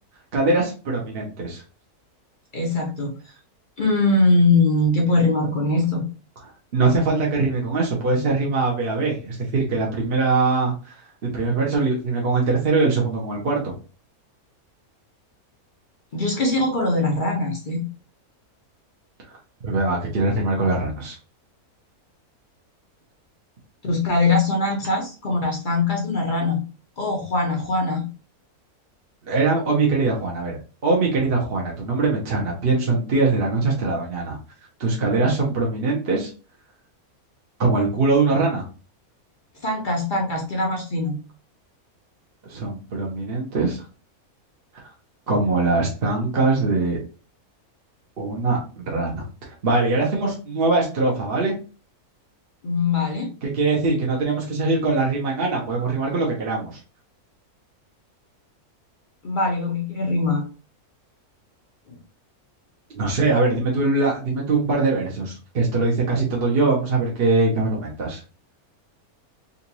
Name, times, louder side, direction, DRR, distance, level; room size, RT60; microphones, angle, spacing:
voice 1, 0.3-1.6 6.7-11.0 11.2-13.7 19.3-19.4 19.6-21.2 29.3-30.6 30.8-34.4 34.8-36.3 37.6-38.6 42.4-43.8 44.7-44.8 45.3-47.0 48.2-49.3 49.6-51.5 53.4-56.8 62.9-68.2, right 3 dB, 45° right, -2 dB, 1.0 m, -22 dB
voice 2, 2.5-3.1 3.8-6.1 16.1-17.9 23.8-26.6 27.0-28.1 39.6-41.2 52.6-53.3 59.2-60.5, left 2 dB, 45° left, 1 dB, 0.7 m, -22 dB
3.9 x 2.5 x 2.8 m, 0.35 s
omnidirectional pair, 1.6 m